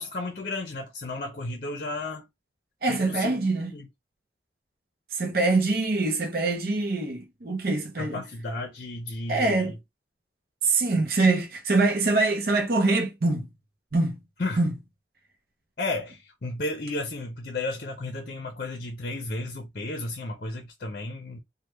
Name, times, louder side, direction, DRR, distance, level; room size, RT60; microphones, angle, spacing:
voice 1, 0.0-2.3 2.9-3.9 8.0-9.7 14.4-14.6 15.8-21.4, left 2 dB, 50° left, 0.6 m, -33 dB
voice 2, 2.8-3.7 5.1-8.2 9.3-9.7 10.6-13.5 13.9-14.2 14.6-14.7, right 3 dB, 50° right, 0.7 m, -24 dB
3.1 x 2.2 x 3.2 m
head